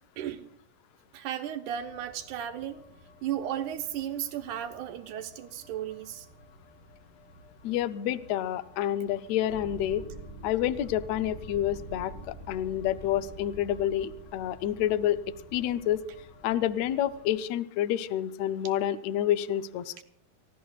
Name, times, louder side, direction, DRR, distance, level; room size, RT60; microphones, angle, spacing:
voice 1, 0.2-0.5 1.1-2.8 3.2-6.3 20.0-20.1, right 10 dB, 75° right, 6 dB, 2.1 m, -35 dB
sound 1, 1.6-17.4, left 2 dB, 35° left, 5.4 m, -56 dB
voice 2, 7.6-10.0 10.4-15.2 15.5-16.0 16.4-20.0, left 11 dB, 80° left, 11 dB, 1.6 m, -28 dB
sound 2, 9.5-17.3, right 1 dB, 15° left, 5.6 m, -46 dB
29.5 x 16.0 x 2.4 m, 0.67 s
omnidirectional pair, 3.9 m